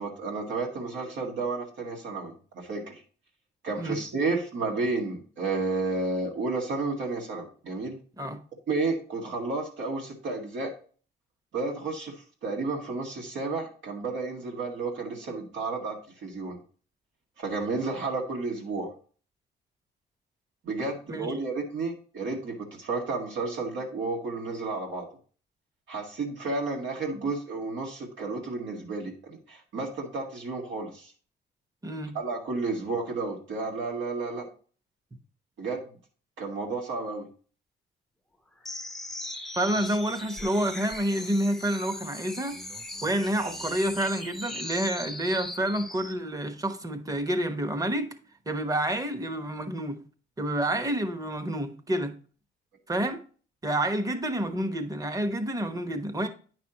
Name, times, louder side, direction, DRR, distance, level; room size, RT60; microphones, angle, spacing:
voice 1, 0.0-3.0 3.6-8.0 8.7-10.7 11.5-16.6 17.4-18.9 20.6-25.1 25.9-31.1 32.1-34.5 35.6-35.8 36.4-37.3, right 3 dB, 70° right, 1.9 m, -32 dB
voice 2, 31.8-32.2 39.6-42.6 43.0-48.1 48.5-50.0 50.4-52.2 52.9-53.2 53.6-56.3, right 1 dB, 15° right, 1.1 m, -29 dB
sound 1, 38.6-46.2, left 1 dB, ahead, 0.8 m, -39 dB
9.4 x 6.0 x 2.9 m
cardioid pair, 90°, 20 cm